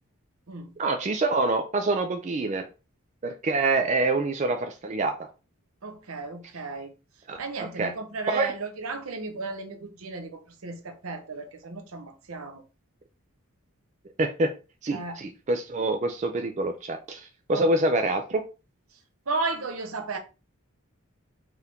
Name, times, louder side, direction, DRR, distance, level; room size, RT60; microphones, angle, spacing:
voice 1, 0.8-2.7 3.2-5.3 7.3-7.9 8.3-8.5 14.2-14.5 14.8-18.4, right 2 dB, 35° right, 0.3 m, -26 dB
voice 2, 5.8-6.9 7.4-12.6 14.9-15.2 17.5-17.7 19.3-20.2, right 3 dB, 75° right, 0.8 m, -34 dB
4.6 x 2.5 x 3.4 m
head